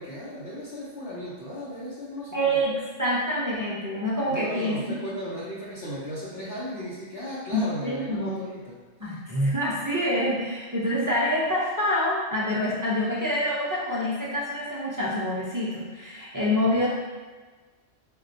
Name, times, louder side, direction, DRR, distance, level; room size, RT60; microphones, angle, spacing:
voice 1, 0.0-2.6 4.3-9.2, equal, 65° left, -9 dB, 0.9 m, -36 dB
voice 2, 2.3-4.9 7.5-8.4 9.0-16.9, equal, 35° right, -8 dB, 0.3 m, -26 dB
4.3 x 2.2 x 2.6 m, 1.4 s
omnidirectional pair, 1.2 m